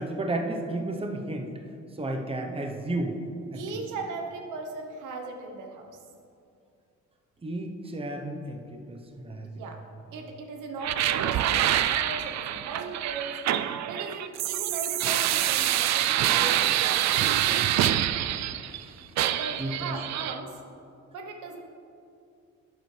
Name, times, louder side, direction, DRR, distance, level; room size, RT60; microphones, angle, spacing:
voice 1, 0.0-1.5 2.0-3.2 3.5-3.6 7.4-9.5 19.6-19.9, right 2 dB, 20° right, 3 dB, 0.9 m, -32 dB
voice 2, 3.5-5.9 9.4-9.8 10.1-13.4 13.9-17.3 19.3-20.6 21.1-21.6, right 3 dB, 85° right, 3 dB, 1.0 m, -38 dB
sound 1, 10.8-18.8 19.2-20.4, right 12 dB, 65° right, 0.4 m, -26 dB
11.0 x 8.2 x 3.3 m, 2.5 s
cardioid pair, 90°, 30 cm